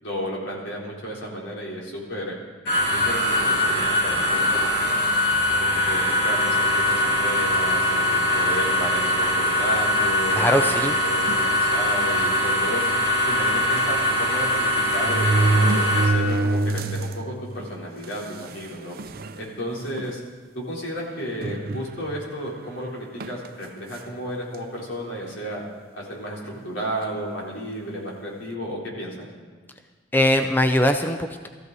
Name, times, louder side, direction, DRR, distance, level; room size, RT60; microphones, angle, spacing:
voice 1, 0.0-2.4 2.9-4.9 5.5-12.8 13.3-18.9 19.3-20.2 20.6-25.6 25.9-29.3, equal, 85° left, -4 dB, 3.9 m, -33 dB
sound 1, 2.6-16.0, left 1 dB, 70° left, 6.2 m, -22 dB
voice 2, 10.3-11.0 30.1-31.5, left 1 dB, 10° left, 6 dB, 0.5 m, -21 dB
sound 2, 11.3-11.5 12.3-12.4 12.7-12.8 14.1-14.2 14.9-17.1 17.6-17.7 18.5-18.6 19.0-19.4 20.0-20.1 21.4-22.2 23.2-23.5, right 2 dB, 50° right, 0.6 m, -24 dB
18.5 x 14.5 x 4.1 m, 1.4 s
head